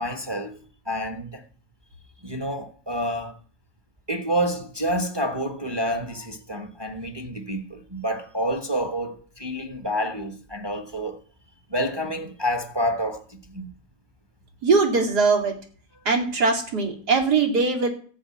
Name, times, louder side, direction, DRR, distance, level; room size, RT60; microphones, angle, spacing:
voice 1, 0.0-1.4 2.2-3.3 4.1-11.2 11.7-13.7, equal, 20° right, 1.1 m, -28 dB
voice 2, 14.6-15.5 16.0-17.9, right 4 dB, 90° right, 3.1 m, -21 dB
14.5 x 5.2 x 8.6 m
omnidirectional pair, 1.7 m